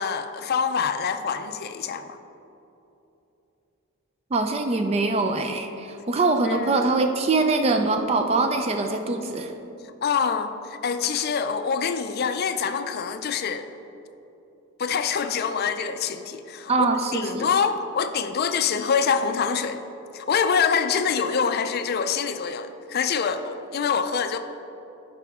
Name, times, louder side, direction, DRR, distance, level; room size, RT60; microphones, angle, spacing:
voice 1, 0.0-2.2 6.4-6.8 10.0-13.7 14.8-19.8 20.1-24.4, left 6 dB, 45° left, 9 dB, 0.4 m, -25 dB
voice 2, 4.3-9.5 16.7-17.5, right 3 dB, 30° right, 6 dB, 0.4 m, -23 dB
11.5 x 4.9 x 3.6 m, 3.0 s
head